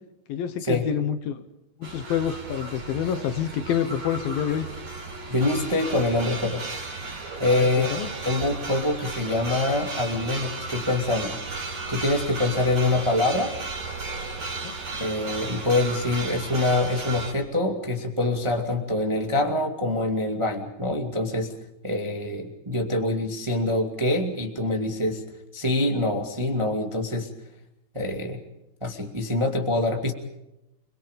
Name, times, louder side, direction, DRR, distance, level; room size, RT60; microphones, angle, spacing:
voice 1, 0.3-1.4 1.8-4.7 7.5-8.1 14.6-14.7, left 8 dB, 70° left, 10 dB, 2.8 m, -27 dB
sound 1, 1.8-17.3, right 3 dB, 40° right, 6.1 m, -34 dB
voice 2, 5.3-6.6 7.4-7.9 8.2-11.4 11.9-13.5 15.0-21.5 21.8-25.2 25.5-27.3 27.9-28.4 28.8-30.1, left 2 dB, 10° right, 2 dB, 1.5 m, -25 dB
30.0 x 23.0 x 5.3 m, 0.90 s
omnidirectional pair, 4.7 m